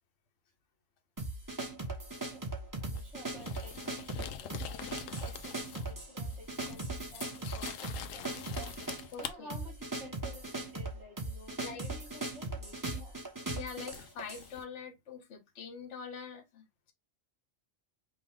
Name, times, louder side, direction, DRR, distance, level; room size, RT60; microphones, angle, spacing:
sound 1, 1.2-14.5, right 2 dB, 15° right, 1.1 m, -39 dB
voice 1, 2.8-13.2, equal, 60° right, 2.1 m, -53 dB
sound 2, 2.9-6.0 6.3-9.3 12.5-12.7 13.9-14.6, left 9 dB, 85° left, 1.0 m, -45 dB
voice 2, 9.1-9.6 11.6-11.8 13.5-16.9, left 6 dB, 65° left, 1.2 m, -44 dB
5.4 x 2.5 x 3.6 m
omnidirectional pair, 1.3 m